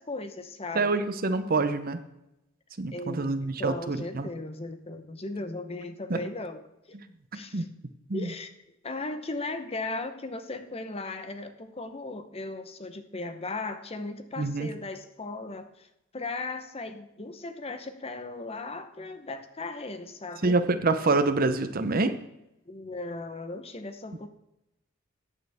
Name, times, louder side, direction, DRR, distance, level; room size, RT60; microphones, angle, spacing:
voice 1, 0.0-1.1 2.9-7.0 7.3-7.7 8.1-8.5 8.8-15.9 16.1-20.6 22.7-24.3, left 2 dB, 30° left, 9 dB, 0.8 m, -37 dB
voice 2, 0.7-2.0 2.8-4.3 6.1-6.2 7.5-7.6 8.1-8.3 14.4-14.7 20.4-22.2, right 3 dB, 45° right, 11 dB, 0.8 m, -26 dB
14.0 x 9.1 x 3.5 m, 0.87 s
head